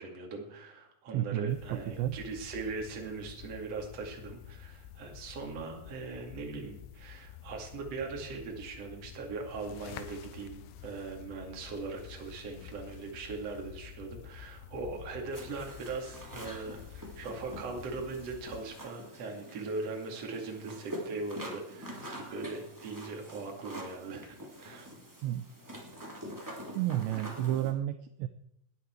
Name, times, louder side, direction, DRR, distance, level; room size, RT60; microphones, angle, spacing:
voice 1, 0.0-24.3 24.6-24.9, right 3 dB, 40° right, 1 dB, 2.8 m, -40 dB
voice 2, 1.1-2.1 25.2-25.4 26.8-28.3, right 13 dB, 80° right, 10 dB, 2.7 m, -31 dB
sound 1, 1.5-18.6, left 11 dB, 85° left, 3.2 m, -49 dB
sound 2, 15.3-27.7, equal, 10° right, 1.3 m, -45 dB
19.0 x 9.9 x 4.6 m, 0.77 s
omnidirectional pair, 5.4 m